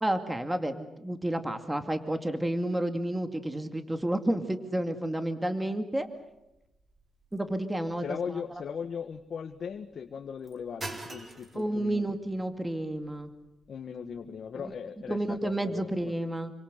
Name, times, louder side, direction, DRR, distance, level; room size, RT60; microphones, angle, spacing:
voice 1, 0.0-6.1 7.3-8.0 11.6-13.3 15.1-16.5, right 1 dB, 10° right, 7 dB, 2.3 m, -30 dB
sound 1, 6.0-16.1, right 2 dB, 25° right, 4.0 m, -49 dB
voice 2, 8.0-12.2 13.7-16.1, left 7 dB, 55° left, 5 dB, 1.8 m, -38 dB
28.0 x 25.5 x 6.9 m, 0.91 s
cardioid pair, 110°, 0 cm